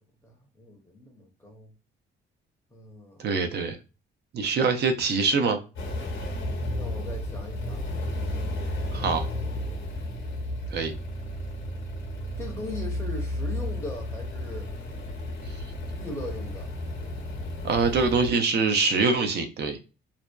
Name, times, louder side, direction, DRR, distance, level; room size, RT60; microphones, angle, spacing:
voice 1, 0.2-1.7 2.7-3.2 6.7-7.8 8.1-8.5 12.4-14.7 15.9-16.7, left 2 dB, 15° left, 0.6 m, -40 dB
voice 2, 3.2-3.8 4.3-5.6 8.9-9.3 10.7-11.0 17.6-19.8, right 4 dB, 55° right, 0.5 m, -24 dB
sound 1, 5.8-18.3, left 1 dB, 80° left, 0.8 m, -33 dB
2.6 x 2.1 x 2.2 m
cardioid pair, 90°, 20 cm